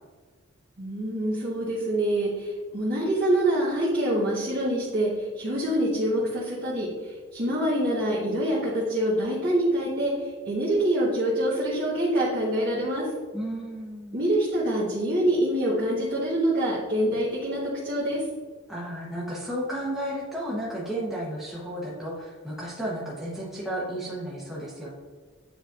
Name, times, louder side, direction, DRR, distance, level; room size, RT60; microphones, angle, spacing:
voice 1, 0.8-13.0 14.1-18.2, right 1 dB, 50° right, -10 dB, 1.4 m, -25 dB
voice 2, 13.3-14.2 18.7-24.9, right 1 dB, ahead, -7 dB, 1.1 m, -33 dB
9.2 x 4.3 x 2.6 m, 1.5 s
head